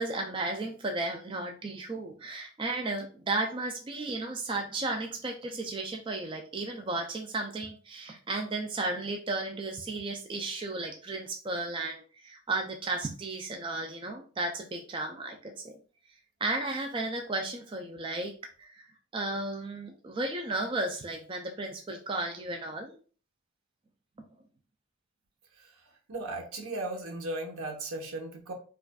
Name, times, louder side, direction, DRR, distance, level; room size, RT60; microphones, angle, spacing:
voice 1, 0.0-15.8 16.4-18.3 18.6-23.0, right 2 dB, 25° right, 3 dB, 0.3 m, -34 dB
voice 2, 26.1-28.5, right 2 dB, 80° right, 2 dB, 0.9 m, -36 dB
4.7 x 2.5 x 2.2 m, 0.39 s
head